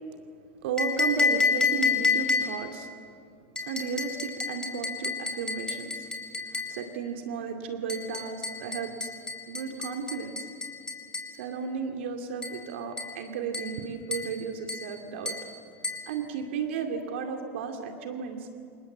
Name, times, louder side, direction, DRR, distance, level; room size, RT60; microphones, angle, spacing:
voice 1, 0.6-2.9 3.6-6.1 6.5-9.1 9.5-10.5 11.3-15.3 16.1-18.5, right 6 dB, 60° right, 4 dB, 2.4 m, -34 dB
sound 1, 0.8-2.7 3.6-6.8 7.9-11.4 12.4-12.6 13.0-13.2 13.5-13.8 14.1-14.4 14.7-14.9 15.3-15.5 15.8-16.1, left 4 dB, 10° left, 4.4 m, -30 dB
28.5 x 28.0 x 7.4 m, 2.5 s
figure-of-eight pair, 85°, 7 cm